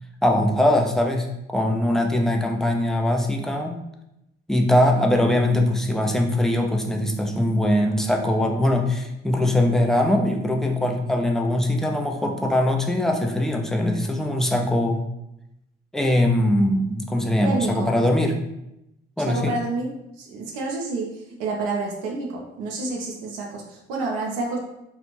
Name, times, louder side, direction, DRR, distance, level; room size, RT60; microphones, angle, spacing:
voice 1, 0.2-1.3 1.5-3.8 4.5-15.1 15.9-18.4 19.2-19.6, left 1 dB, ahead, 2 dB, 0.3 m, -21 dB
voice 2, 17.4-17.9 19.3-24.6, right 3 dB, 70° right, -1 dB, 0.5 m, -29 dB
2.4 x 2.2 x 3.0 m, 0.85 s
figure-of-eight pair, 45°, 30 cm